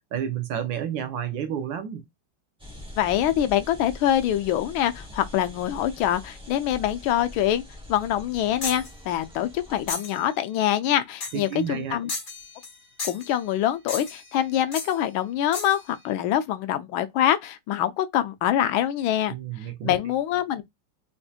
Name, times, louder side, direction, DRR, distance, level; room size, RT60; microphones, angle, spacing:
voice 1, 0.1-2.0 11.3-12.0 19.3-19.9, right 9 dB, 70° right, 1.4 m, -30 dB
sound 1, 2.6-9.9, left 1 dB, 5° right, 0.4 m, -43 dB
voice 2, 3.0-7.6 7.9-12.1 13.0-19.3 19.8-20.6, left 11 dB, 85° left, 1.4 m, -25 dB
sound 2, 8.6-8.9 9.9-10.2 11.2-11.5 12.1-12.7 13.0-13.3 13.9-14.3 14.7-14.9 15.5-15.8, left 4 dB, 40° left, 1.4 m, -33 dB
4.3 x 2.7 x 2.4 m
omnidirectional pair, 2.2 m